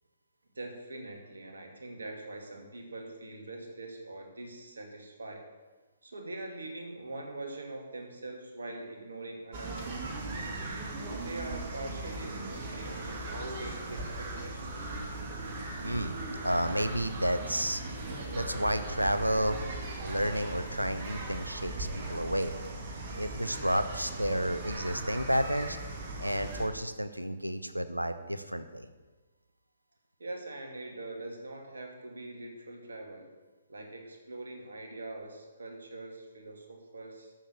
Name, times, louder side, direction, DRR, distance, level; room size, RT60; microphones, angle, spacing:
voice 1, 0.5-5.5 6.0-9.9 11.0-15.0 30.2-33.3 33.7-37.3, right 2 dB, 65° right, 2 dB, 2.4 m, -43 dB
sound 1, 9.5-26.7, right 2 dB, 40° right, 2.2 m, -38 dB
voice 2, 15.8-16.2 16.4-17.8 18.3-22.5 23.2-25.8 26.2-28.9, equal, 85° right, 11 dB, 0.9 m, -31 dB
13.0 x 6.7 x 7.1 m, 1.2 s
figure-of-eight pair, 130°, 0 cm